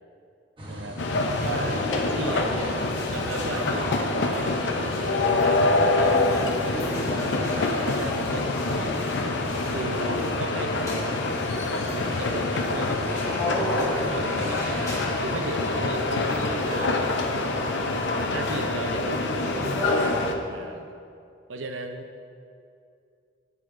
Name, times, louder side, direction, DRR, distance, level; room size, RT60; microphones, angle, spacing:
sound 1, 0.6-15.0, equal, 25° right, 1.0 m, -40 dB
voice 1, 0.7-1.0 1.4-7.4 7.8-9.0 9.7-11.2 11.9-17.1 18.3-20.9 21.5-22.3, right 2 dB, 85° right, 6 dB, 0.6 m, -36 dB
sound 2, 1.0-20.3, left 2 dB, 65° left, 0.6 m, -26 dB
sound 3, 1.3-20.1, left 1 dB, 15° left, 1.3 m, -35 dB
9.2 x 8.2 x 2.6 m, 2.5 s
head